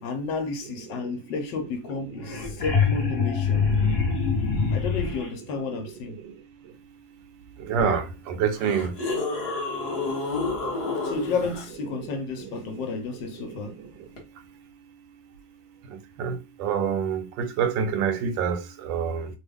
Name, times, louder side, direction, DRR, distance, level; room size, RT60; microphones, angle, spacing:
voice 1, 0.0-3.6 4.7-6.2 11.0-13.8, left 4 dB, 75° left, 1.4 m, -31 dB
sound 1, 1.9-5.3 7.8-7.9 8.5-11.6 14.2-14.3, left 4 dB, 45° left, 0.9 m, -26 dB
voice 2, 7.6-8.9 12.5-12.6 16.2-19.3, right 7 dB, 80° right, 1.3 m, -26 dB
3.3 x 2.3 x 3.4 m
omnidirectional pair, 2.0 m